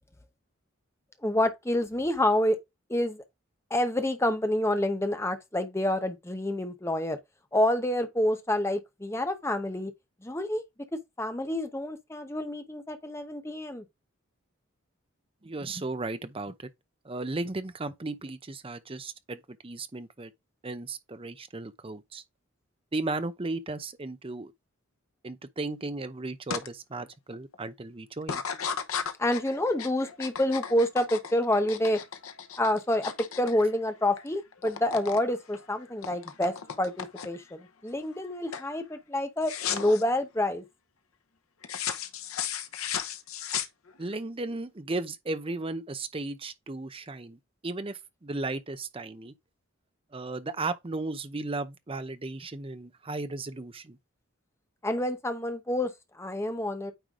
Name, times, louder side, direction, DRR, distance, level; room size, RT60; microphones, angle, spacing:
voice 1, 1.2-2.6 2.9-3.2 3.7-7.2 7.5-9.9 10.2-10.6 11.2-13.8 29.2-32.0 32.6-33.1 33.4-40.6 54.8-55.9 56.2-56.9, left 1 dB, 15° left, 0.9 m, -28 dB
voice 2, 15.4-16.7 17.0-20.3 20.6-22.2 22.9-24.5 25.2-28.4 44.0-49.3 50.1-54.0, right 2 dB, 25° right, 0.6 m, -35 dB
sound 1, 26.5-26.7 27.1-27.5 28.2-34.3 34.5-35.2 35.5-37.5 38.0-38.3 38.5-38.7 39.4-40.0 41.6-44.1, left 8 dB, 90° left, 0.9 m, -35 dB
9.1 x 3.2 x 3.7 m
head